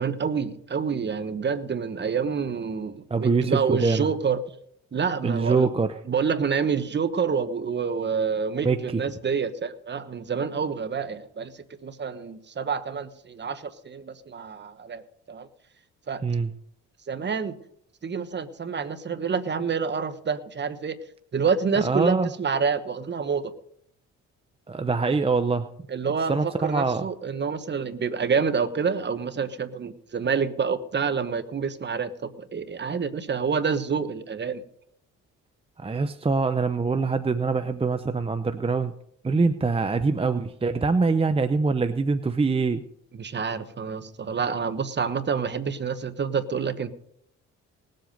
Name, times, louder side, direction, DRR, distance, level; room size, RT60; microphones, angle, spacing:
voice 1, 0.0-4.4 4.9-5.7 6.1-11.5 11.8-15.0 15.3-15.5 16.1-16.2 17.1-17.6 18.0-21.0 21.3-23.5 25.9-34.6 43.2-46.9, right 6 dB, 35° right, 12 dB, 1.2 m, -27 dB
voice 2, 3.1-4.1 5.2-5.9 8.6-9.0 16.2-16.5 21.8-22.3 24.7-25.7 26.3-27.1 35.8-38.9 39.2-42.8, right 4 dB, 20° right, 9 dB, 0.7 m, -24 dB
19.0 x 7.8 x 5.2 m, 0.71 s
cardioid pair, 90°, 30 cm